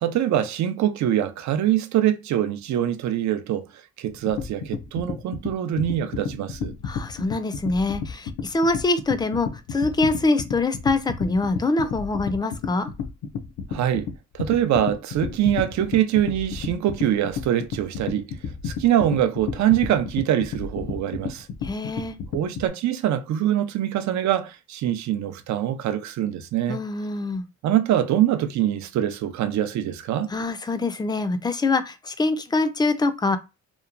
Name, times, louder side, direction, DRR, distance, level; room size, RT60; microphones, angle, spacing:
voice 1, 0.0-3.7 4.0-6.7 13.7-14.1 14.3-18.3 18.6-21.5 22.3-26.8 27.6-30.3, right 11 dB, 65° right, 0.5 m, -24 dB
sound 1, 4.1-22.7, left 6 dB, 65° left, 0.5 m, -32 dB
voice 2, 6.8-12.9 21.6-22.2 26.7-27.4 30.3-33.4, left 3 dB, 15° left, 0.4 m, -24 dB
2.9 x 2.1 x 2.4 m
cardioid pair, 90°, 30 cm